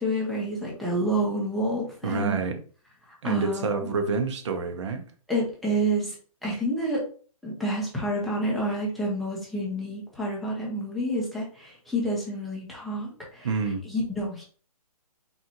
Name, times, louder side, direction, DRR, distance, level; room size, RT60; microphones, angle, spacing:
voice 1, 0.0-2.4 3.2-3.7 5.3-6.2 6.4-7.1 7.4-13.5 13.8-14.4, right 1 dB, ahead, 0.7 m, -28 dB
voice 2, 2.0-2.6 3.2-5.0 13.4-13.8, right 4 dB, 50° right, 0.8 m, -28 dB
4.1 x 3.7 x 3.0 m
hypercardioid pair, 160°, 19 cm